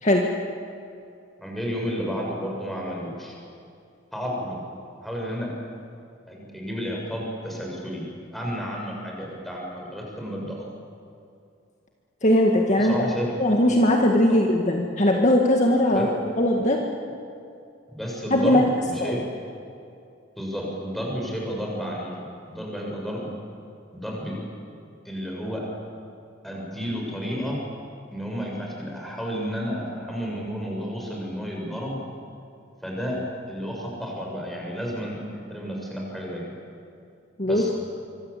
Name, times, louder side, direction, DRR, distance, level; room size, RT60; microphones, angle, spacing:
voice 1, 1.4-3.4 4.1-4.6 5.0-5.5 6.3-8.1 8.3-10.7 12.8-13.3 15.9-16.1 17.9-19.2 20.4-22.2 22.5-23.3 23.9-24.4 25.0-25.7 26.4-27.6 28.1-32.0 32.8-33.2 33.5-36.4 37.4-37.7, equal, ahead, -2 dB, 6.8 m, -31 dB
voice 2, 12.2-13.1 13.4-16.1 16.4-16.9 18.3-18.6 19.0-19.2 37.4-37.6, left 1 dB, 40° left, 1 dB, 1.9 m, -20 dB
25.5 x 24.5 x 8.4 m, 2.5 s
head